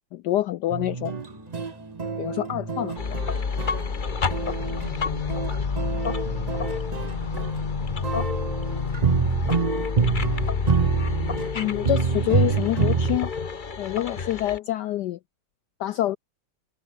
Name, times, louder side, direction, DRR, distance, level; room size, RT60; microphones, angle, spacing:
voice 1, 0.1-1.1 2.2-2.9 11.5-13.3 13.8-15.2 15.8-16.2, left 14 dB, 80° left, 0.9 m, -26 dB
sound 1, 0.6-10.4, equal, 10° right, 7.5 m, -48 dB
sound 2, 0.7-4.9 5.3-13.2, right 5 dB, 55° right, 0.4 m, -26 dB
voice 2, 2.4-2.9 4.5-6.0 6.4-10.0, left 3 dB, 65° left, 6.3 m, -47 dB
sound 3, 3.0-14.6, left 5 dB, 30° left, 0.9 m, -29 dB
omnidirectional pair, 2.3 m